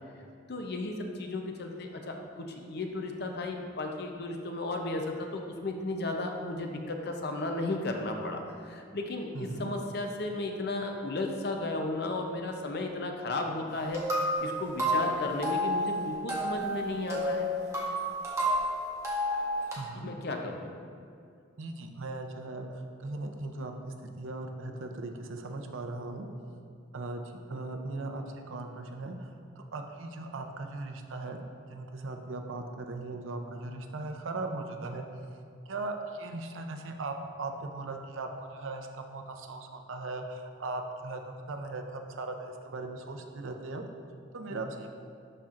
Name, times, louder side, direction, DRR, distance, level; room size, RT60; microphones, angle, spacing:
voice 1, 0.5-17.5 19.9-20.7 44.5-44.6, left 2 dB, 55° left, 3 dB, 0.6 m, -34 dB
voice 2, 9.3-9.7 19.8-20.1 21.6-26.3 26.9-29.3 29.6-31.4 31.7-35.2 35.7-43.8 44.3-44.9, right 2 dB, 85° right, 4 dB, 0.6 m, -38 dB
sound 1, 13.7-19.7, equal, 15° right, 1.2 m, -31 dB
11.5 x 4.3 x 2.5 m, 2.4 s
head